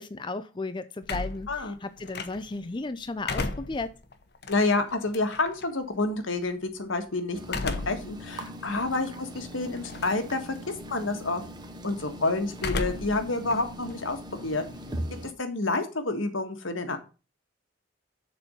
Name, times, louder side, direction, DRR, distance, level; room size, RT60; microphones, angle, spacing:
voice 1, 0.0-3.9, left 3 dB, 25° left, 0.5 m, -34 dB
sound 1, 1.0-2.7 3.1-5.6 7.4-8.1 8.6-8.7 9.8-10.3 10.6-11.0 12.5-13.2 13.5-14.9, left 3 dB, 55° left, 0.9 m, -34 dB
voice 2, 4.5-10.6 10.9-11.4 11.8-14.6 15.4-17.0, left 2 dB, 80° left, 1.5 m, -29 dB
sound 2, 7.3-15.3, equal, 20° right, 1.0 m, -41 dB
6.9 x 4.4 x 6.8 m
head